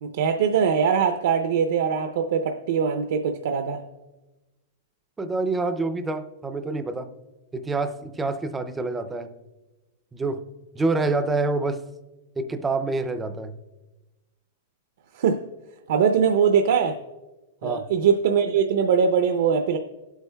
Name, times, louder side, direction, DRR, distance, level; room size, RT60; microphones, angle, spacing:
voice 1, 0.0-3.8 15.1-15.4 15.9-17.0 17.6-19.8, right 6 dB, 55° right, 6 dB, 0.5 m, -22 dB
voice 2, 5.2-7.1 7.5-9.3 10.1-10.4 10.7-11.8 12.4-13.5 17.6-17.9, right 3 dB, 10° right, 10 dB, 0.4 m, -27 dB
20.0 x 8.0 x 2.2 m, 1.1 s
supercardioid pair, 175°, 0 cm